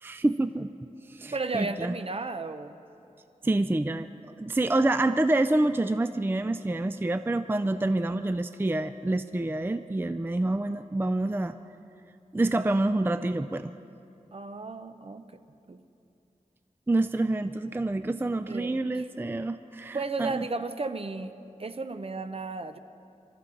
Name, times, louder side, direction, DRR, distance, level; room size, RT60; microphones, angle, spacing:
voice 1, 0.0-0.7 1.1-1.9 3.4-4.1 4.4-11.5 12.3-13.7 16.9-20.4, right 2 dB, 15° right, 10 dB, 0.4 m, -27 dB
voice 2, 1.3-2.8 14.3-15.4 15.7-15.8 18.4-19.1 19.9-21.3 21.6-22.8, right 3 dB, 45° right, 10 dB, 0.7 m, -34 dB
26.5 x 13.5 x 3.9 m, 2.7 s
wide cardioid pair, 80°, 13 cm